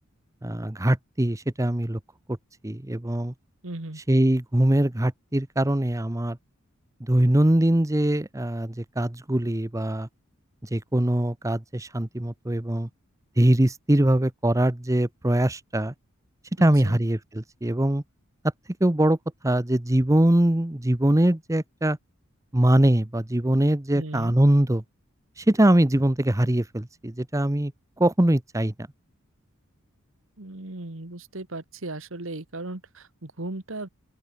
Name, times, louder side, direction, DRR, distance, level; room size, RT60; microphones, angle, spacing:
voice 1, 0.4-2.0 2.6-3.3 4.1-6.4 7.1-10.1 10.7-12.9 13.4-15.9 16.6-18.0 18.8-19.2 19.4-22.0 22.5-24.8 25.4-27.7 28.0-28.7, right 1 dB, 15° right, 0.9 m, -22 dB
voice 2, 3.6-4.0 16.6-17.0 23.9-24.3 30.4-33.9, right 2 dB, 65° right, 1.9 m, -36 dB
open air
head